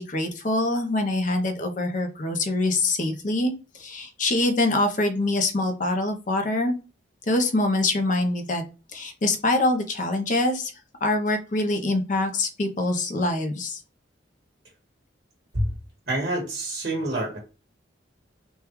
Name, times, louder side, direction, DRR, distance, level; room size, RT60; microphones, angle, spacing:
voice 1, 0.0-6.8 7.3-8.6 8.9-10.7 11.0-13.8, left 2 dB, 45° left, 6 dB, 0.6 m, -24 dB
voice 2, 16.1-17.4, right 1 dB, 55° right, -2 dB, 1.1 m, -27 dB
3.5 x 2.3 x 2.9 m, 0.31 s
head